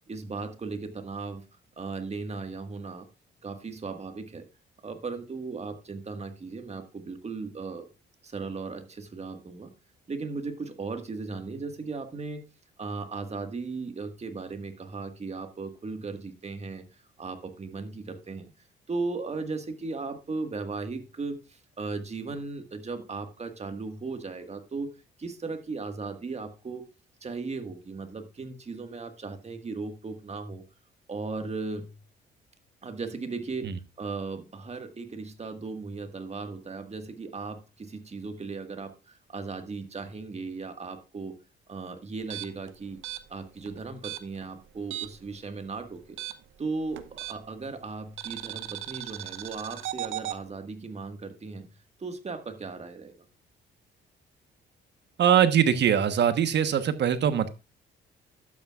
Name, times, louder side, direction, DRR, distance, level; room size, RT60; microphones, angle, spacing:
voice 1, 0.1-1.4 1.8-3.1 3.4-4.5 4.8-7.8 8.2-9.7 10.1-12.5 12.8-16.9 17.2-18.5 18.9-24.9 25.2-26.9 27.2-30.7 31.1-32.0 32.8-33.7 34.0-41.4 41.7-43.0 43.3-46.2 46.6-51.7 52.0-53.1, right 4 dB, 35° right, 1.7 m, -37 dB
sound 1, 42.2-45.3 45.6-47.6 48.2-50.4, right 13 dB, 80° right, 0.8 m, -37 dB
voice 2, 55.2-57.5, right 9 dB, 60° right, 1.2 m, -22 dB
12.0 x 8.6 x 2.4 m
cardioid pair, 90°, 20 cm